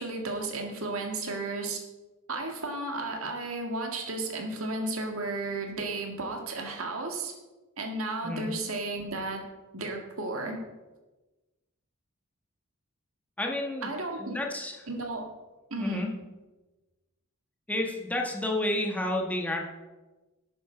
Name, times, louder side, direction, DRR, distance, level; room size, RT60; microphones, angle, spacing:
voice 1, 0.0-1.8 2.3-7.3 7.8-9.4 9.7-10.6 13.8-14.4 14.9-15.3 15.7-16.1, right 2 dB, 70° right, 3 dB, 1.9 m, -33 dB
voice 2, 13.4-13.9 14.2-14.7 15.8-16.1 17.7-19.6, left 1 dB, 5° left, 0 dB, 1.4 m, -30 dB
12.0 x 8.7 x 4.5 m, 1.1 s
head